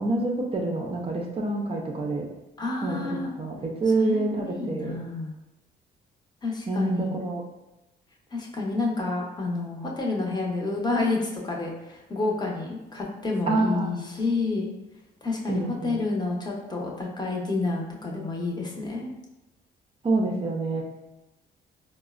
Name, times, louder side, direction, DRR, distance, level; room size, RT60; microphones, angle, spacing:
voice 1, 0.0-2.3 2.8-5.0 6.7-7.4 13.5-13.9 15.5-16.0 20.0-20.8, right 2 dB, 30° right, 0 dB, 0.5 m, -27 dB
voice 2, 2.6-3.3 4.0-5.4 6.4-7.2 8.3-14.7 15.2-19.1, left 3 dB, 20° left, -1 dB, 0.7 m, -29 dB
3.9 x 2.0 x 2.3 m, 0.97 s
cardioid pair, 90°, 20 cm